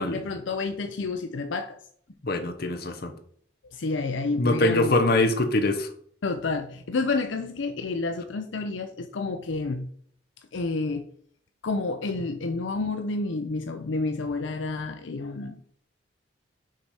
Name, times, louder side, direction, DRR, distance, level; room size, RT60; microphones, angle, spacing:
voice 1, 0.1-1.8 3.7-4.9 6.2-9.9 10.5-11.0 11.6-15.6, left 3 dB, 75° left, 0.5 m, -29 dB
voice 2, 2.2-3.1 4.4-5.9, left 2 dB, 55° left, 0.9 m, -23 dB
6.3 x 4.2 x 4.7 m
head